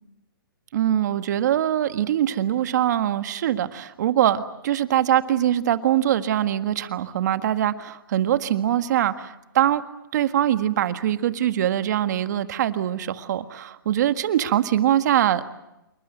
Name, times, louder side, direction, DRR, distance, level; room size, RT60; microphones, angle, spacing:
voice 1, 0.7-9.8 10.1-15.5, right 11 dB, 50° right, 10 dB, 1.7 m, -23 dB
28.0 x 22.5 x 7.8 m, 0.90 s
hypercardioid pair, 150°, 12 cm